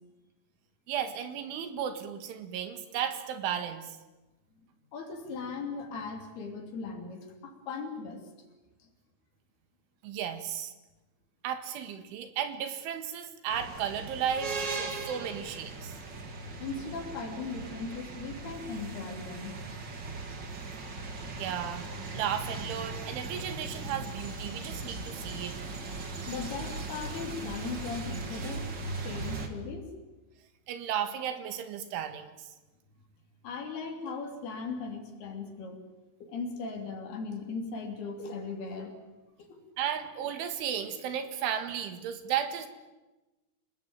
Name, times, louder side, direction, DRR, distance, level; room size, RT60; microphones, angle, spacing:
voice 1, 0.9-4.0 10.0-10.7 11.4-16.0 21.4-21.9 22.1-25.6 30.7-32.5 39.8-42.7, right 9 dB, 80° right, 9 dB, 4.2 m, -34 dB
voice 2, 4.6-8.3 8.8-8.9 16.6-19.6 26.3-29.9 33.4-35.9 36.2-39.0 39.4-39.6, left 4 dB, 60° left, 4 dB, 4.7 m, -38 dB
sound 1, 13.5-29.5, right 3 dB, 45° right, 1.4 m, -39 dB
28.5 x 19.0 x 8.9 m, 1.1 s
omnidirectional pair, 5.4 m